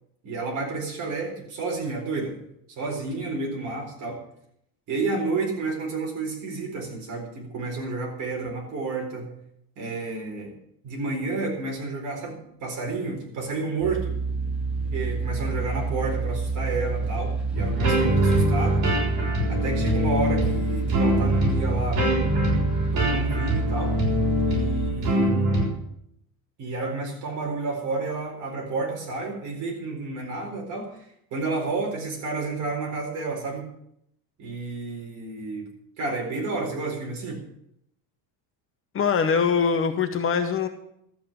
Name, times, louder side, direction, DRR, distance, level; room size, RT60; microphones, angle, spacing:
voice 1, 0.2-2.4 2.7-4.2 4.9-9.3 9.8-10.5 10.8-14.2 14.9-18.9 19.5-22.0 22.9-24.0 24.5-25.7 26.6-33.7 34.4-35.7 36.0-37.4, right 3 dB, 45° right, 0 dB, 4.3 m, -31 dB
sound 1, 13.8-24.9, right 4 dB, ahead, 2.2 m, -28 dB
sound 2, 17.5-25.7, equal, 60° right, 6.0 m, -24 dB
voice 2, 38.9-40.7, left 6 dB, 30° left, 6 dB, 0.8 m, -23 dB
13.0 x 8.3 x 7.9 m, 0.75 s
cardioid pair, 180°, 42 cm